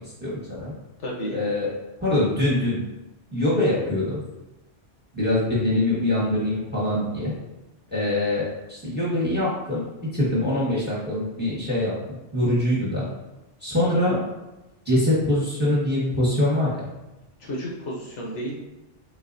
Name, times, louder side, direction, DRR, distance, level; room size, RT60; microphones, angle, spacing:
voice 1, 0.2-0.7 1.3-1.7 2.0-2.8 3.3-4.2 5.1-7.3 7.9-13.1 13.6-14.3 14.8-16.7, left 1 dB, 10° right, -7 dB, 1.2 m, -23 dB
voice 2, 1.0-1.4 17.4-18.5, equal, 75° left, -4 dB, 1.3 m, -31 dB
4.2 x 4.0 x 2.6 m, 1.0 s
omnidirectional pair, 1.2 m